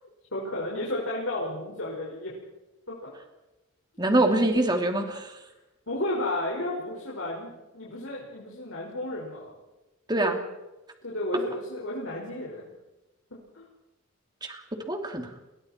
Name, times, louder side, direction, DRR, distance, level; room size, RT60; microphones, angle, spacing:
voice 1, 0.3-2.3 2.9-3.1 5.9-9.5 11.0-12.6 13.3-13.7, left 1 dB, 75° left, -4 dB, 5.4 m, -33 dB
voice 2, 4.0-5.4 10.1-10.4 14.4-14.6 14.9-15.3, right 1 dB, 20° right, 4 dB, 3.0 m, -24 dB
30.0 x 23.0 x 4.5 m, 1.0 s
head